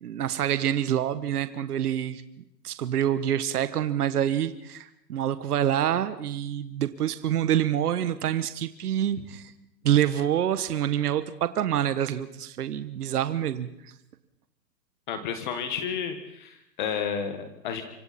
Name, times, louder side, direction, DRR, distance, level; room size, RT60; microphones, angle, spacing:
voice 1, 0.0-2.2 2.6-9.5 9.8-13.9, right 10 dB, 65° right, 12 dB, 1.3 m, -26 dB
voice 2, 15.1-17.8, left 7 dB, 30° left, 8 dB, 1.5 m, -31 dB
26.0 x 25.5 x 4.2 m, 0.81 s
hypercardioid pair, 170°, 50 cm